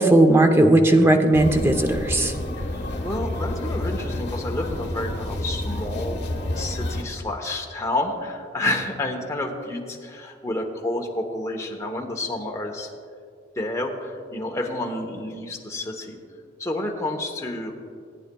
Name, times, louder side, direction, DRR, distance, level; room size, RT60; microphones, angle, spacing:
voice 1, 0.0-2.4, right 1 dB, 15° right, 5 dB, 0.6 m, -17 dB
metro-ride, 1.3-7.0, left 1 dB, 65° left, 1.2 m, -29 dB
voice 2, 2.6-6.2 6.5-12.9 13.6-16.2 16.6-17.7, left 1 dB, 15° left, 1 dB, 1.0 m, -29 dB
18.0 x 9.5 x 2.3 m, 2.3 s
head